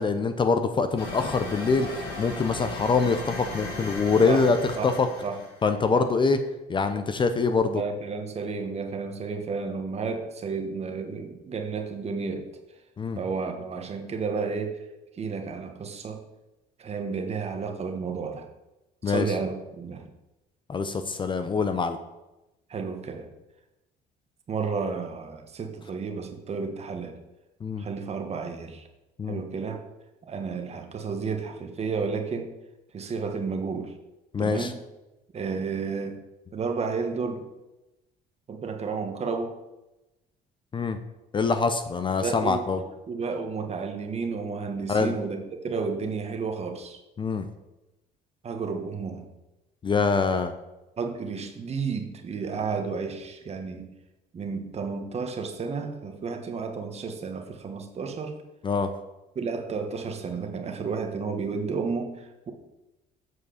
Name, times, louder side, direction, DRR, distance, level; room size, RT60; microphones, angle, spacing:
voice 1, 0.0-4.6 4.8-5.1 5.6-6.4 6.7-7.8 13.0-13.2 19.0-19.3 20.7-22.0 27.6-27.8 29.2-29.4 34.3-34.7 40.7-41.0 41.3-42.8 44.9-45.2 47.2-47.5 49.8-50.5 58.6-58.9, left 4 dB, 30° left, 9 dB, 0.6 m, -24 dB
sound 1, 1.0-5.7, left 2 dB, 70° left, 3.1 m, -37 dB
voice 2, 7.7-12.5 13.1-14.8 15.2-16.2 16.8-18.5 19.0-20.0 22.7-23.3 24.5-27.1 27.8-28.8 29.3-29.8 30.2-32.5 32.9-33.9 34.4-34.8 35.3-36.2 36.5-37.4 38.5-39.6 42.2-42.6 43.1-47.0 48.4-49.3 51.0-53.9 54.3-58.4 59.3-62.5, right 5 dB, 40° right, 4 dB, 1.3 m, -32 dB
7.9 x 4.8 x 6.5 m, 0.99 s
cardioid pair, 110°, 17 cm